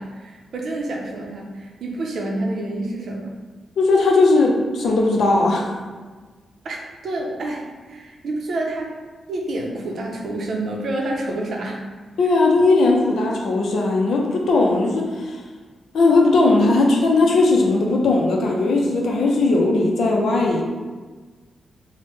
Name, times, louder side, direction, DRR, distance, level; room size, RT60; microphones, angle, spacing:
voice 1, 0.0-3.4 6.6-9.0 9.3-11.8, right 2 dB, 65° right, 0 dB, 0.5 m, -28 dB
voice 2, 3.8-5.7 12.2-15.4 15.9-20.6, left 3 dB, 75° left, 0 dB, 0.5 m, -18 dB
3.1 x 2.1 x 3.1 m, 1.4 s
cardioid pair, 95°, 0 cm